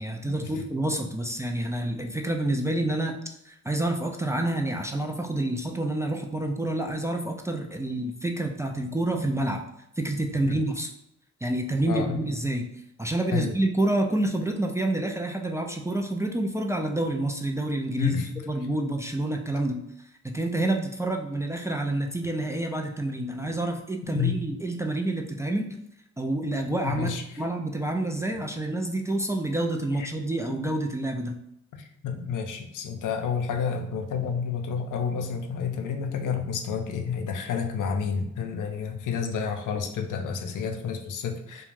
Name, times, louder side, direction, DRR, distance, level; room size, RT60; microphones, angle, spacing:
voice 1, 0.0-3.2 3.4-9.6 10.0-10.9 11.4-12.7 13.0-18.1 18.5-19.8 20.2-25.8 26.2-27.1 27.4-31.4, right 1 dB, 10° right, 2 dB, 0.3 m, -28 dB
voice 2, 11.9-12.2 13.3-13.5 18.0-18.4 24.0-24.4 26.8-27.2 28.3-28.4 30.0-30.1 32.0-41.7, left 6 dB, 80° left, 4 dB, 0.5 m, -30 dB
2.4 x 2.2 x 3.1 m, 0.77 s
cardioid pair, 50°, 31 cm